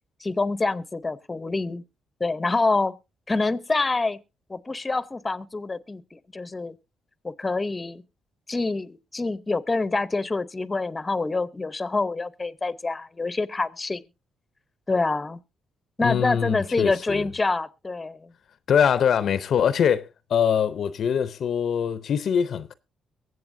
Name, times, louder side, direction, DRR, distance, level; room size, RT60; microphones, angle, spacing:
voice 1, 0.2-1.8 2.2-2.9 3.3-4.2 4.5-6.8 7.2-8.0 8.5-14.0 14.9-15.4 16.0-18.3, left 3 dB, 20° left, 0.7 m, -26 dB
voice 2, 16.0-17.3 18.7-22.7, left 8 dB, 60° left, 0.6 m, -23 dB
23.0 x 7.7 x 2.6 m
cardioid pair, 90°, 0 cm